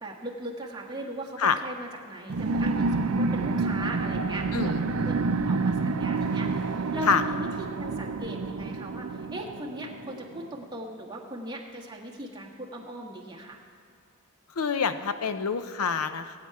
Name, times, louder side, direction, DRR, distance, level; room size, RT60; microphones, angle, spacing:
voice 1, 0.0-5.1 5.5-13.6, right 1 dB, 20° right, -2 dB, 1.5 m, -39 dB
sound 1, 2.3-10.4, right 3 dB, 70° right, 0.5 m, -28 dB
voice 2, 4.5-5.1 7.1-7.2 14.6-16.4, left 6 dB, 80° left, 11 dB, 0.6 m, -27 dB
19.5 x 8.8 x 4.8 m, 2.3 s
head